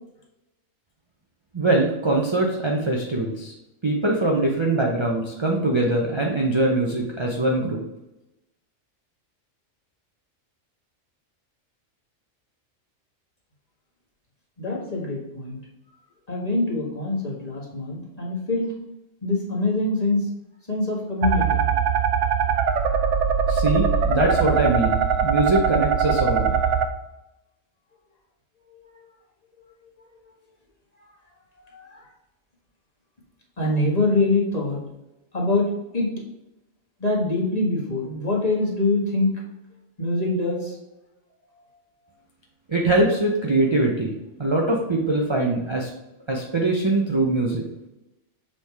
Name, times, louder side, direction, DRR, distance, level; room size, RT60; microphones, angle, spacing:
voice 1, 1.5-3.5 3.8-7.8 23.5-26.5 42.7-44.1 44.4-45.9 46.3-47.6, right 2 dB, 25° right, -1 dB, 0.7 m, -22 dB
voice 2, 14.6-15.6 16.3-18.7 19.2-20.3 20.7-21.7 31.7-32.1 33.6-34.8 35.3-36.1 37.0-39.3 40.0-40.8, left 2 dB, 30° left, -4 dB, 1.8 m, -24 dB
sound 1, 21.2-26.8, right 6 dB, 70° right, 0.9 m, -21 dB
6.8 x 3.8 x 4.8 m, 0.93 s
omnidirectional pair, 1.4 m